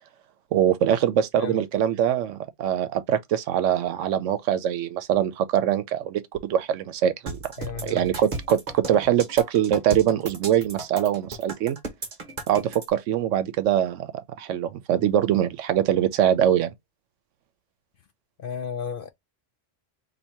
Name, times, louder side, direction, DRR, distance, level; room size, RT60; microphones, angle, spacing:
voice 1, 0.5-7.4 7.8-11.8 12.5-14.1 14.4-16.7, right 10 dB, 80° right, 0.9 m, -23 dB
sound 1, 7.3-12.9, right 3 dB, 40° right, 1.0 m, -35 dB
voice 2, 7.6-8.0 18.4-19.1, left 7 dB, 60° left, 0.6 m, -33 dB
2.8 x 2.7 x 4.3 m
omnidirectional pair, 1.3 m